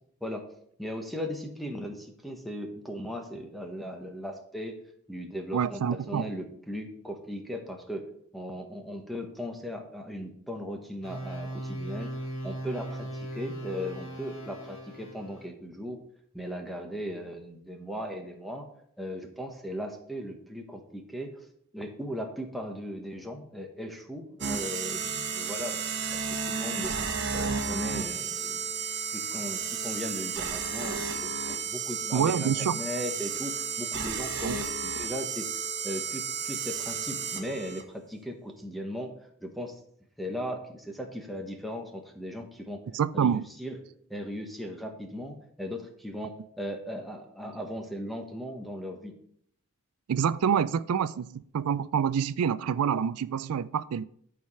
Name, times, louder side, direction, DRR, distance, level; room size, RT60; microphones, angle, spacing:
voice 1, 0.8-4.7 5.1-5.8 6.1-8.0 8.3-16.0 16.3-18.6 19.0-21.3 21.7-25.9 26.1-28.6 29.1-35.5 35.8-39.1 39.4-39.8 40.2-42.8 43.1-43.8 44.1-49.1, equal, ahead, 1.2 m, -37 dB
voice 2, 5.5-6.3 32.1-32.8 34.4-34.6 42.9-43.5 50.1-54.1, right 7 dB, 80° right, 0.4 m, -27 dB
sound 1, 11.0-15.5, right 1 dB, 60° left, 2.2 m, -38 dB
sound 2, 24.4-37.8, right 6 dB, 50° right, 1.2 m, -33 dB
11.5 x 4.8 x 5.5 m
head